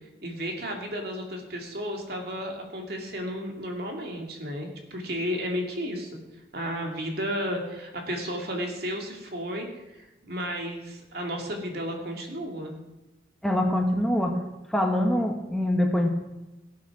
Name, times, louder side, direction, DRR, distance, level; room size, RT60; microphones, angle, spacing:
voice 1, 0.2-6.1 6.5-9.7 9.9-12.7, equal, 55° right, 2 dB, 2.7 m, -33 dB
voice 2, 13.4-14.4 14.7-16.1, left 1 dB, ahead, 2 dB, 1.2 m, -24 dB
17.5 x 8.5 x 6.2 m, 1.0 s
head